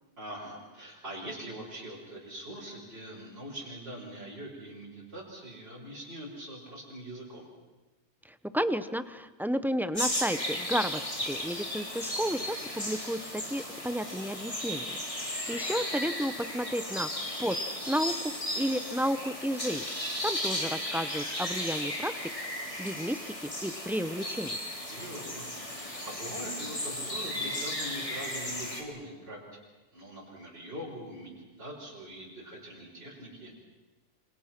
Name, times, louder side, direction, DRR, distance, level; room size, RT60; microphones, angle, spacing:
voice 1, 0.2-7.5 15.5-15.8 24.9-29.4 29.9-33.5, right 1 dB, 40° right, -4 dB, 5.7 m, -43 dB
voice 2, 8.5-17.6 17.9-19.8 20.2-22.1 22.8-24.6, equal, ahead, 12 dB, 0.5 m, -32 dB
sound 1, 9.9-28.8, left 1 dB, 20° left, 3.4 m, -35 dB
28.0 x 25.5 x 6.0 m, 1.1 s
omnidirectional pair, 1.6 m